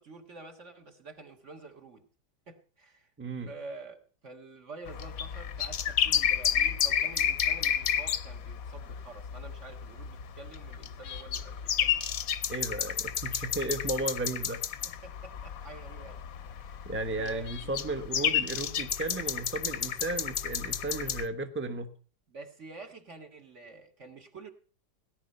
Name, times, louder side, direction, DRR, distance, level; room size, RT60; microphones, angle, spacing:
voice 1, 0.0-2.0 2.5-3.1 3.5-12.0 14.8-16.2 16.6-18.0 22.3-24.5, right 3 dB, 40° right, 5 dB, 1.8 m, -48 dB
voice 2, 3.2-3.5 12.5-14.6 16.8-21.9, right 2 dB, 10° right, 8 dB, 0.8 m, -34 dB
sound 1, 4.9-21.3, left 9 dB, 60° left, 1.1 m, -31 dB
17.5 x 10.5 x 5.5 m, 0.40 s
omnidirectional pair, 2.0 m